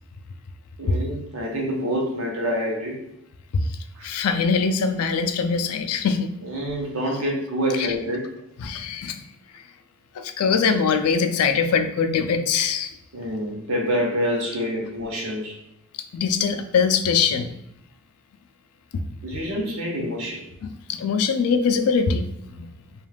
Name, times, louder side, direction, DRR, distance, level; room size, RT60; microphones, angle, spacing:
voice 1, 0.8-3.0 3.9-4.1 6.4-8.3 13.1-15.6 19.2-20.4, equal, 65° right, 0 dB, 0.7 m, -27 dB
voice 2, 4.0-6.3 7.8-7.9 8.6-9.2 10.1-12.9 16.1-17.5 18.9-19.0 20.6-22.7, left 5 dB, 80° left, 8 dB, 0.4 m, -22 dB
2.4 x 2.3 x 3.2 m, 0.79 s
head